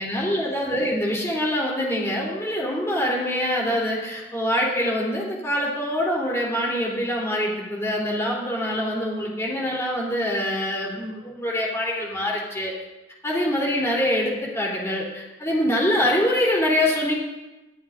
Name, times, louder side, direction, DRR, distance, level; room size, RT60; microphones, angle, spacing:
voice 1, 0.0-12.7 13.2-17.1, equal, 15° left, -4 dB, 3.5 m, -24 dB
21.5 x 13.5 x 2.6 m, 1.1 s
head